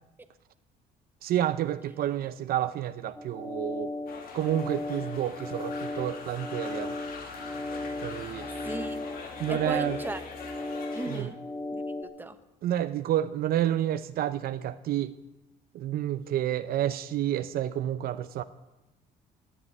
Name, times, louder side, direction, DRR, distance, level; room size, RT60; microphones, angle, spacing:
voice 1, 1.2-3.9 4.3-6.9 8.0-8.5 9.4-10.0 11.1-11.3 12.6-15.1 15.7-18.4, right 12 dB, 65° right, 12 dB, 0.7 m, -29 dB
sound 1, 3.2-12.0, left 2 dB, 10° left, 2.5 m, -36 dB
sound 2, 4.1-11.2, left 4 dB, 60° left, 2.5 m, -43 dB
voice 2, 8.1-9.0 9.5-10.2 10.9-11.4 11.7-12.4, right 2 dB, 10° right, 9 dB, 1.1 m, -38 dB
17.5 x 6.8 x 9.9 m, 1.0 s
cardioid pair, 110°, 17 cm